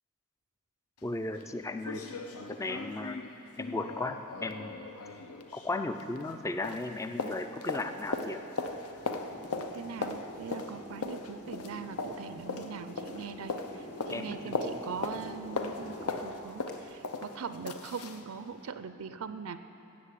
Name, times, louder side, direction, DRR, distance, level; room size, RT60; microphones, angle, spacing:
sound 1, 1.0-1.1 1.4-1.5 1.8-6.4 6.6-18.3 18.6-18.7, left 3 dB, 75° left, 0.8 m, -38 dB
voice 1, 1.0-2.1 2.5-3.2 3.6-4.7 5.5-8.4 14.1-14.9, left 2 dB, 15° left, 8 dB, 0.4 m, -36 dB
sound 2, 9.0-16.7, left 1 dB, 45° left, 1.8 m, -47 dB
voice 2, 9.7-19.6, right 6 dB, 70° right, 11 dB, 0.5 m, -41 dB
13.5 x 7.9 x 8.2 m, 2.9 s
head